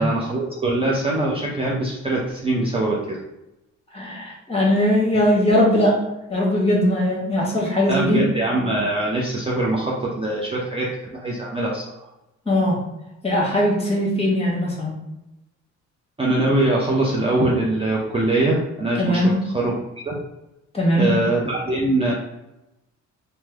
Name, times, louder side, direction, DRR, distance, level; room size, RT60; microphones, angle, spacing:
voice 1, 0.0-3.2 7.9-11.8 16.2-19.7 20.1-20.2 21.0-22.1, right 2 dB, 20° right, -3 dB, 0.5 m, -22 dB
voice 2, 3.9-6.0 6.3-8.2 12.5-12.8 13.2-14.9 19.0-19.4 20.7-21.1, left 1 dB, 20° left, -3 dB, 1.2 m, -20 dB
3.1 x 2.0 x 3.4 m, 0.93 s
cardioid pair, 90°, 30 cm